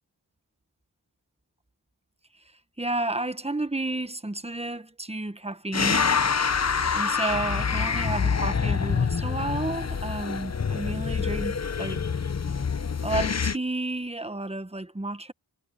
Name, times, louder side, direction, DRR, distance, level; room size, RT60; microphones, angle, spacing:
voice 1, 2.8-6.2 6.9-12.0 13.0-15.3, right 2 dB, 15° right, 1.4 m, -31 dB
sound 1, 5.7-13.6, left 6 dB, 40° left, 1.0 m, -26 dB
cardioid pair, 50°, 42 cm